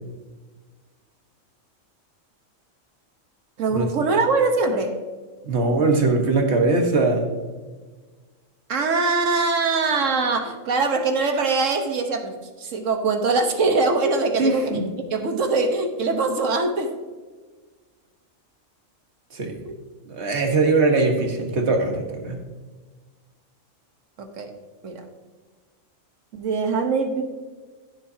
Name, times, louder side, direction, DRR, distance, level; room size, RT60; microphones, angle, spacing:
voice 1, 3.6-5.0 8.7-14.8 15.1-16.9 19.6-19.7 24.2-24.5 24.8-25.0 26.3-27.2, right 3 dB, 75° right, 6 dB, 1.5 m, -22 dB
voice 2, 5.4-7.3 14.4-14.9 19.3-19.6 20.1-22.4, right 3 dB, 55° right, 3 dB, 1.7 m, -21 dB
15.0 x 7.3 x 2.8 m, 1.4 s
omnidirectional pair, 1.3 m